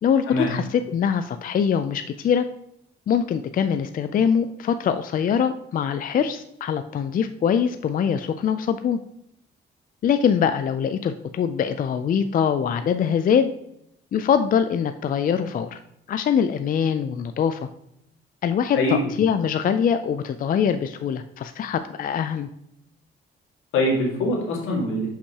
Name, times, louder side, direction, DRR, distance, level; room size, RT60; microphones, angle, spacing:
voice 1, 0.0-2.5 3.1-9.0 10.0-13.5 14.1-15.8 16.1-17.7 18.4-22.5, left 7 dB, 45° left, 9 dB, 0.4 m, -23 dB
voice 2, 18.8-19.1 23.7-25.1, left 1 dB, 85° left, -1 dB, 2.0 m, -23 dB
6.4 x 5.7 x 2.9 m, 0.77 s
cardioid pair, 90°, 20 cm